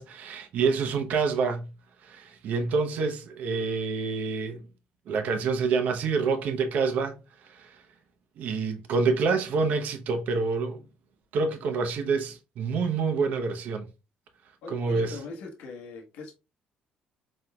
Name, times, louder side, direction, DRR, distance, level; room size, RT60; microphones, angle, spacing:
voice 1, 0.0-1.7 2.0-4.6 5.1-7.2 7.4-7.8 8.4-10.8 11.3-13.9 14.7-15.2, right 4 dB, 70° right, 0.7 m, -27 dB
voice 2, 14.6-16.3, left 3 dB, 80° left, 1.0 m, -40 dB
4.2 x 3.6 x 2.2 m
supercardioid pair, 80°, 3 cm